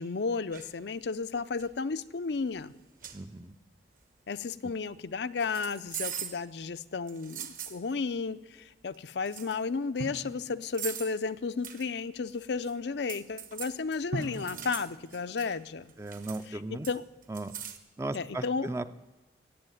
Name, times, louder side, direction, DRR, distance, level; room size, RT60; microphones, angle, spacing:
voice 1, 0.0-2.7 4.3-15.9 16.9-17.0 18.1-18.7, left 4 dB, 70° left, 12 dB, 0.5 m, -33 dB
sound 1, 0.5-0.7 1.4-1.7 2.6-2.7 3.0-3.2 5.4-6.4 7.1-7.8 8.9-9.0 9.3-9.6 10.6-11.2 11.6-11.9 12.3-12.7 13.1-15.6 15.9-16.5 16.8-17.8, right 9 dB, 45° right, 1.2 m, -41 dB
voice 2, 3.1-3.6 16.0-16.9 17.3-17.5 18.0-18.9, right 2 dB, 15° right, 11 dB, 0.5 m, -36 dB
Drum, 10.0-11.5 14.1-16.3, right 1 dB, 70° right, 1.0 m, -42 dB
15.5 x 8.1 x 9.2 m, 1.1 s
head